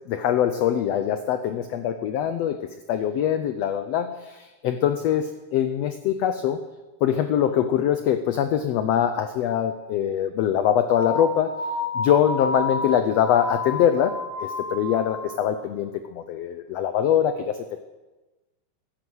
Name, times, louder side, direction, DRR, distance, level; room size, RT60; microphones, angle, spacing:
voice 1, 0.1-6.6 7.0-11.6 11.9-17.6, left 9 dB, 85° left, 9 dB, 1.4 m, -23 dB
sound 1, 10.9-15.5, left 3 dB, 20° left, 1.8 m, -30 dB
12.5 x 11.0 x 8.0 m, 1.2 s
omnidirectional pair, 3.8 m